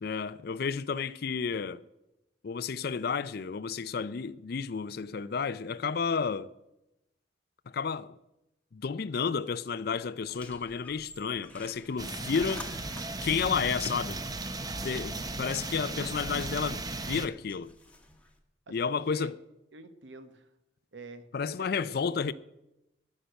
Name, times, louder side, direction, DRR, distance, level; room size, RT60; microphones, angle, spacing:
voice 1, 0.0-1.8 2.4-6.5 7.7-8.2 8.7-12.7 13.2-14.2 14.8-17.7 18.7-19.4 21.3-22.3, left 5 dB, 55° left, 0.4 m, -31 dB
sound 1, 10.3-18.4, left 2 dB, 5° left, 1.2 m, -50 dB
sound 2, 12.0-17.3, right 2 dB, 20° right, 0.7 m, -36 dB
voice 2, 18.7-19.3 19.7-20.5 20.9-21.3 21.6-22.0, right 3 dB, 75° right, 1.1 m, -48 dB
11.5 x 6.6 x 9.0 m
head